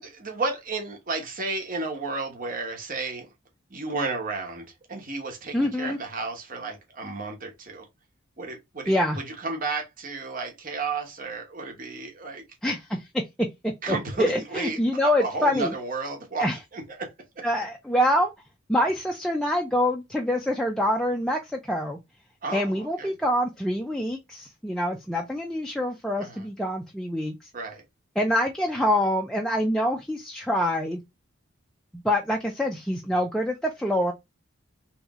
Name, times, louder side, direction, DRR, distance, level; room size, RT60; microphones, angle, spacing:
voice 1, 0.0-3.3 3.7-7.9 8.4-8.9 9.2-12.4 13.8-14.8 15.2-16.4 16.7-17.1 22.4-23.1 26.2-26.4 27.5-27.8, right 3 dB, 45° right, 1.1 m, -32 dB
voice 2, 5.5-6.0 8.9-9.2 12.6-13.2 13.6-15.7 16.4-16.6 17.4-18.3 18.7-22.0 22.5-27.4 28.2-31.0 31.9-34.1, equal, 5° left, 0.4 m, -25 dB
3.2 x 3.1 x 3.5 m
head